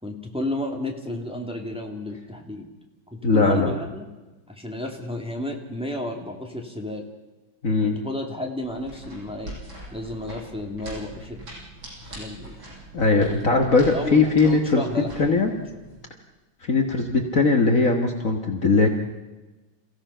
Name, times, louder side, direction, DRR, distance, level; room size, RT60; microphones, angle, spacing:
voice 1, 0.0-2.7 3.1-4.1 4.5-7.0 7.8-9.5 9.9-11.5 12.2-12.5 13.4-13.5 13.9-15.4, left 1 dB, 5° right, 1 dB, 2.4 m, -32 dB
voice 2, 3.2-3.7 7.6-8.0 12.9-14.8 15.2-15.5 16.6-18.9, left 3 dB, 45° left, 3 dB, 1.8 m, -20 dB
sound 1, 8.6-16.0, right 2 dB, 85° right, 7.7 m, -42 dB
28.5 x 16.5 x 5.7 m, 1.1 s
omnidirectional pair, 2.1 m